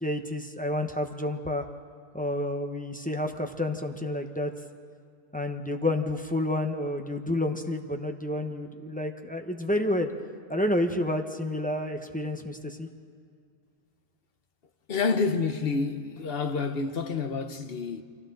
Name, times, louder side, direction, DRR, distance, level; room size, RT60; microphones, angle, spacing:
voice 1, 0.0-1.7 2.1-4.5 5.3-10.1 10.5-12.9, left 1 dB, 10° left, 1.0 m, -29 dB
voice 2, 14.9-18.0, left 4 dB, 65° left, 1.2 m, -28 dB
29.5 x 24.0 x 4.0 m
omnidirectional pair, 1.1 m